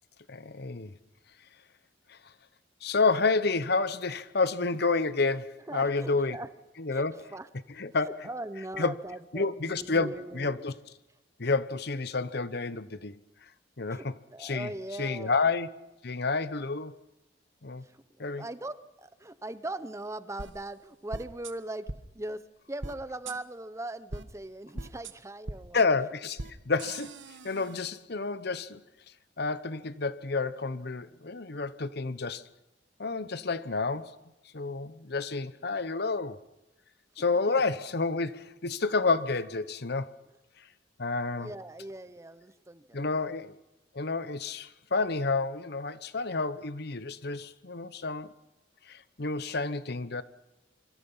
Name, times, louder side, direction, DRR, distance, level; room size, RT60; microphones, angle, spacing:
voice 1, 0.3-0.9 2.1-2.2 2.8-6.4 6.8-7.1 7.8-8.3 8.8-8.9 9.3-10.7 11.4-13.1 13.8-14.1 14.4-14.7 15.0-15.7 16.0-17.0 17.6-17.8 18.2-18.4 25.7-27.1 27.4-28.8 29.4-32.4 33.0-34.2 34.5-36.4 37.2-40.1 41.0-41.5 42.9-43.6 43.9-48.3 48.9-50.2, left 4 dB, 60° left, 1.0 m, -29 dB
voice 2, 5.7-6.5 6.9-7.0 7.3-7.5 8.0-10.6 13.9-15.4 17.8-18.0 18.4-21.9 22.1-22.4 22.7-25.8 37.5-37.6 41.4-43.0, right 2 dB, 15° right, 0.8 m, -40 dB
sound 1, 20.4-20.5 21.1-21.5 21.9-22.0 22.8-22.9 23.3-23.4 24.1-24.2 24.8-25.1 25.5-25.6 26.4-26.5 26.8-27.8, right 2 dB, 80° right, 1.4 m, -39 dB
26.5 x 24.0 x 5.7 m
head